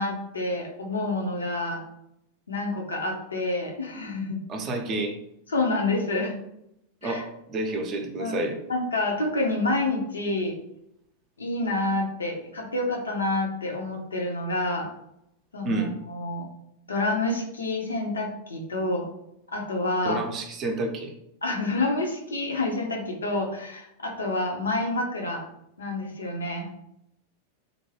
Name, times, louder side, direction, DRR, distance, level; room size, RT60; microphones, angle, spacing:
voice 1, 0.0-1.8 2.5-4.4 5.5-6.4 7.0-7.2 8.2-8.4 8.7-10.5 11.4-14.9 15.5-16.4 16.9-19.1 19.5-20.2 21.4-25.4 25.8-26.7, left 2 dB, 75° left, 1 dB, 0.6 m, -28 dB
voice 2, 4.5-5.2 7.0-8.6 15.6-15.9 20.0-21.1, right 2 dB, 30° right, 3 dB, 0.5 m, -29 dB
2.5 x 2.1 x 3.2 m, 0.80 s
figure-of-eight pair, 90°, 0 cm